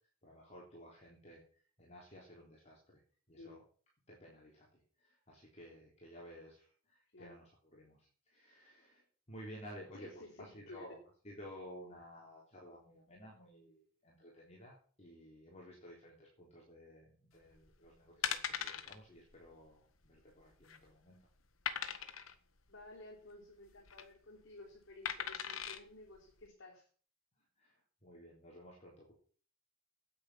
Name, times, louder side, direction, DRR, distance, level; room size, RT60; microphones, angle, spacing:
voice 1, 0.2-3.0 3.3-3.6 4.1-11.0 11.2-21.3 27.4-29.1, equal, 30° left, -3 dB, 3.6 m, -55 dB
voice 2, 9.9-11.0 22.7-26.9, left 2 dB, 65° left, -1 dB, 3.7 m, -54 dB
sound 1, 17.6-17.8 18.2-19.0 19.3-19.5 19.7-19.8 20.4-20.9 21.7-22.3 23.7-24.0 25.1-25.8 26.4-26.5, left 8 dB, 80° left, 1.3 m, -39 dB
9.7 x 8.7 x 8.6 m, 0.43 s
head